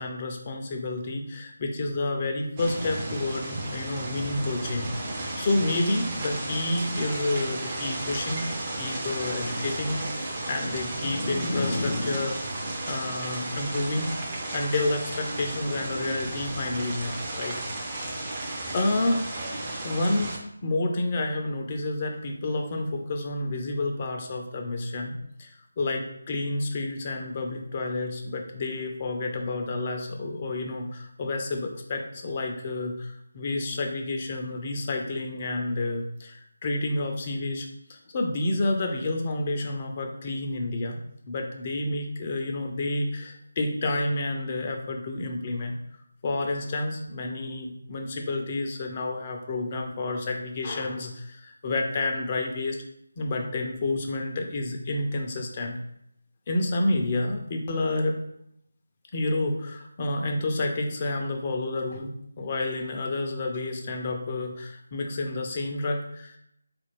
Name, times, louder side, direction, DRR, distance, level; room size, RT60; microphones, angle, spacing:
voice 1, 0.0-8.5 8.8-10.0 10.2-17.6 17.9-18.1 18.7-19.2 19.8-25.1 25.4-41.0 41.3-45.8 46.2-52.8 53.2-55.8 56.5-58.2 59.1-66.4, left 2 dB, 30° left, 2 dB, 0.5 m, -29 dB
sound 1, 2.6-20.4, right 2 dB, 20° right, 0.6 m, -34 dB
4.1 x 2.5 x 3.0 m, 0.75 s
figure-of-eight pair, 155°, 0 cm